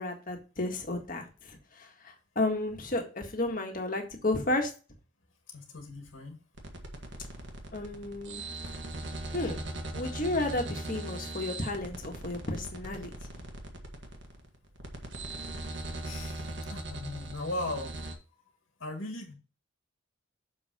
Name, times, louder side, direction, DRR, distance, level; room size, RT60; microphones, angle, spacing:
voice 1, 0.0-4.7 7.7-8.5 9.3-9.6 9.9-13.1, left 2 dB, 40° left, 3 dB, 1.7 m, -32 dB
voice 2, 5.5-6.4 16.0-17.9 18.8-19.3, left 1 dB, 75° left, 3 dB, 1.9 m, -38 dB
sound 1, 6.6-18.1, right 2 dB, 60° right, 1.5 m, -40 dB
6.8 x 5.6 x 4.2 m, 0.33 s
head